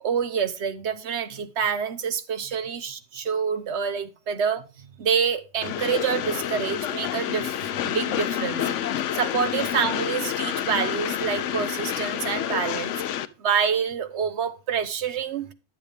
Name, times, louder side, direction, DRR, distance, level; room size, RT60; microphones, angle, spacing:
voice 1, 0.0-7.5 7.8-13.0 13.4-15.5, right 7 dB, 65° right, 1.1 m, -27 dB
Train, 5.6-13.3, left 10 dB, 75° left, 0.9 m, -28 dB
10.0 x 7.3 x 3.4 m
omnidirectional pair, 1.3 m